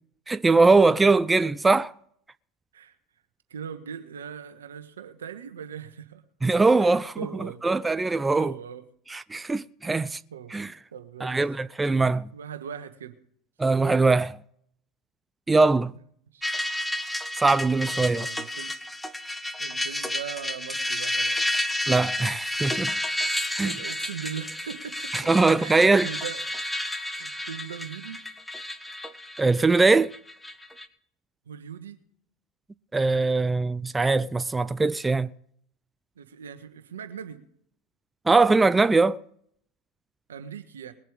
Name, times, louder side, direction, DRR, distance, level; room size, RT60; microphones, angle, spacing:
voice 1, 0.3-1.9 6.4-7.1 7.4-8.5 9.1-10.2 10.5-10.7 11.2-12.3 13.6-14.4 15.5-15.9 17.4-18.3 21.9-22.9 23.6-23.7 25.1-26.1 29.4-30.1 32.9-35.3 38.3-39.2, right 3 dB, 15° right, 0.5 m, -21 dB
voice 2, 3.5-6.2 6.8-7.6 8.3-8.8 9.8-10.6 10.9-11.4 12.3-13.2 16.3-16.5 17.9-18.7 19.6-21.4 23.6-25.3 25.6-26.4 27.1-28.2 31.4-32.0 36.2-37.4 40.3-40.9, right 8 dB, 85° right, 1.5 m, -40 dB
sound 1, 16.4-30.9, left 1 dB, 5° left, 1.5 m, -31 dB
21.0 x 7.6 x 5.1 m
hypercardioid pair, 85°, 0 cm